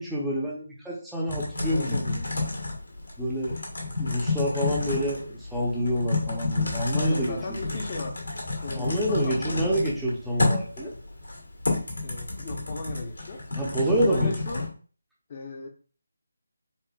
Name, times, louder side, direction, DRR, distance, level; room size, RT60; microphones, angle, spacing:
voice 1, 0.0-2.2 3.2-3.6 4.0-7.6 8.8-10.9 13.6-14.3, equal, ahead, -6 dB, 0.6 m, -27 dB
Typing, 1.3-14.7, left 3 dB, 75° left, 1.4 m, -30 dB
voice 2, 1.7-2.0 6.9-8.1 8.6-9.8 12.0-13.4 14.0-14.7 15.3-15.7, left 3 dB, 35° left, 2 dB, 0.7 m, -36 dB
4.2 x 2.4 x 2.3 m, 0.39 s
figure-of-eight pair, 160°, 0 cm